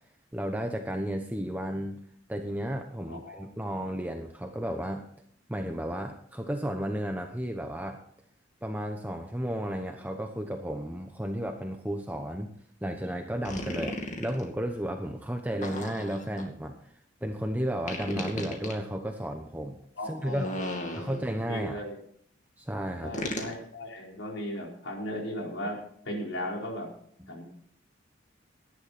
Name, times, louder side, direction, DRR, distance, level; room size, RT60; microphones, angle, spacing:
voice 1, 0.3-2.0 2.3-5.0 5.5-8.0 8.6-12.5 12.8-16.9 17.2-19.8 20.0-20.6 21.0-21.8 22.6-23.1, equal, 10° right, 4 dB, 1.0 m, -33 dB
voice 2, 3.1-3.4 20.0-20.9 21.4-22.0 23.0-25.8 26.0-26.9 27.3-27.4, left 1 dB, 85° left, -1 dB, 4.7 m, -36 dB
sound 1, 13.4-14.4 15.6-16.4 17.9-18.8 20.2-21.4 23.1-23.5, left 1 dB, 40° left, 2.5 m, -35 dB
17.5 x 11.5 x 4.3 m, 0.64 s
head